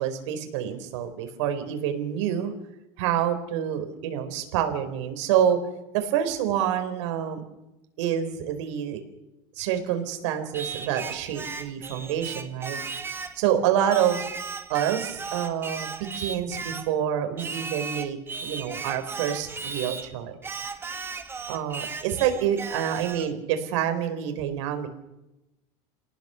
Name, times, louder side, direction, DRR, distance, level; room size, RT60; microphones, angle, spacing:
voice 1, 0.0-2.5 3.0-5.6 5.9-7.4 8.0-9.0 9.6-12.8 13.4-14.2 14.7-20.6 21.5-24.9, right 9 dB, 85° right, 7 dB, 4.3 m, -27 dB
Singing, 10.5-13.4 13.9-16.9 17.4-20.1 20.4-23.3, right 5 dB, 15° right, 1.6 m, -36 dB
27.5 x 18.5 x 7.0 m, 0.97 s
supercardioid pair, 145°, 15 cm